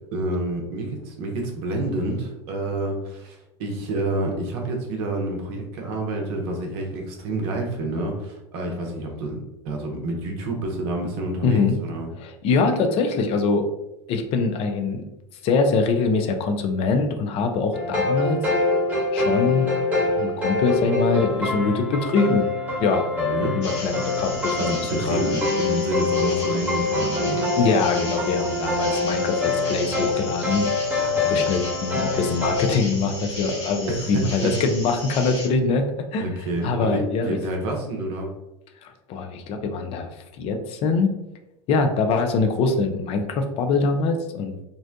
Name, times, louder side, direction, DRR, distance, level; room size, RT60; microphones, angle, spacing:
voice 1, 0.1-9.4 9.6-12.1 23.2-23.6 24.6-27.5 30.9-31.5 33.9-34.5 36.2-38.3, right 2 dB, 60° right, 1 dB, 0.7 m, -28 dB
voice 2, 11.4-11.8 12.2-13.7 14.1-15.1 15.4-18.4 19.1-19.7 20.2-22.5 22.8-23.0 23.5-25.2 27.6-30.7 31.1-35.9 36.1-36.3 36.6-37.4 38.8-40.1 40.4-41.1 41.7-44.6, left 4 dB, 40° left, 5 dB, 0.4 m, -23 dB
sound 1, 17.7-32.6, left 3 dB, 10° right, 1.1 m, -25 dB
sound 2, 23.6-35.5, left 2 dB, 70° left, 0.9 m, -36 dB
2.5 x 2.1 x 2.5 m, 0.94 s
hypercardioid pair, 80°, 15 cm